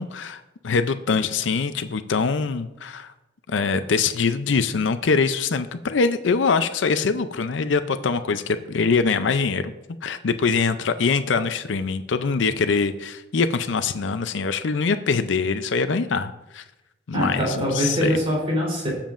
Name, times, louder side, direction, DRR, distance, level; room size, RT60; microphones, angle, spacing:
voice 1, 0.0-3.1 3.5-9.7 10.0-16.6 17.1-18.2, left 4 dB, 75° left, 11 dB, 0.5 m, -23 dB
voice 2, 17.1-18.9, equal, 30° right, -4 dB, 3.5 m, -23 dB
19.5 x 7.4 x 2.5 m, 0.98 s
head